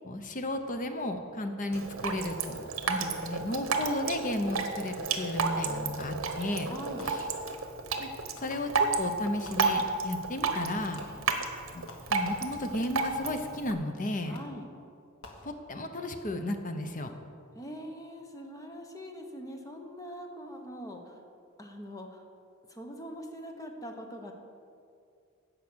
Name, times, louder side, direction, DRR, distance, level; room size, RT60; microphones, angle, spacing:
voice 1, 0.0-6.7 7.0-7.3 8.0-8.1 8.4-11.0 11.7-11.8 12.1-14.4 15.4-17.1, left 1 dB, 40° left, 6 dB, 0.9 m, -34 dB
Drip, 1.7-13.7, right 4 dB, 75° right, 1.0 m, -32 dB
Fireworks, 6.0-6.4 7.0-8.0 8.4-9.1 9.4-10.1 10.7-12.7 13.2-13.9 14.3-14.7 15.2-16.0, left 2 dB, 70° left, 1.6 m, -51 dB
voice 2, 6.6-7.1 11.0-11.2 14.3-14.7 17.5-21.1 21.6-22.2 22.7-24.3, equal, 15° left, 3 dB, 1.2 m, -43 dB
15.5 x 5.5 x 6.3 m, 2.4 s
head